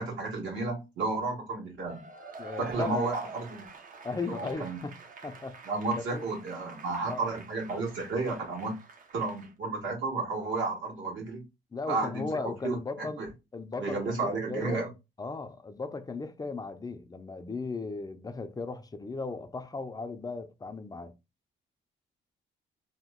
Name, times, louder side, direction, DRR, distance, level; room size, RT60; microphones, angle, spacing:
voice 1, 0.0-2.0 2.6-3.7 4.3-4.8 5.6-8.7 9.1-11.4 11.9-12.3 12.6-12.8 13.2-13.3 13.8-14.9, right 3 dB, 70° right, 1.6 m, -32 dB
Cheering / Applause / Crowd, 1.9-9.5, right 3 dB, 45° right, 0.6 m, -47 dB
voice 2, 2.4-3.1 4.0-5.0 5.2-5.6 6.1-6.3 7.1-7.3 11.7-13.2 13.5-14.8 15.2-21.1, left 3 dB, 20° left, 0.5 m, -36 dB
2.9 x 2.1 x 3.6 m
cardioid pair, 90°, 20 cm